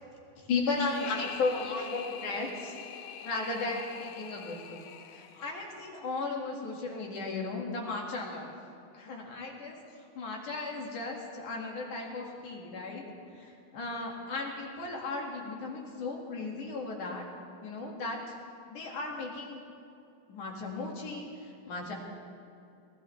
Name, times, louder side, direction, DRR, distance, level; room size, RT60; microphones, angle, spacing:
voice 1, 0.4-2.8 3.2-8.5 8.9-9.8 10.1-13.0 13.3-17.2 17.6-18.3 18.7-19.6 20.3-21.9, left 3 dB, 60° left, -1 dB, 3.3 m, -35 dB
sound 1, 0.7-5.8, left 8 dB, 75° left, 1.8 m, -45 dB
21.5 x 17.5 x 3.4 m, 2.6 s
omnidirectional pair, 4.2 m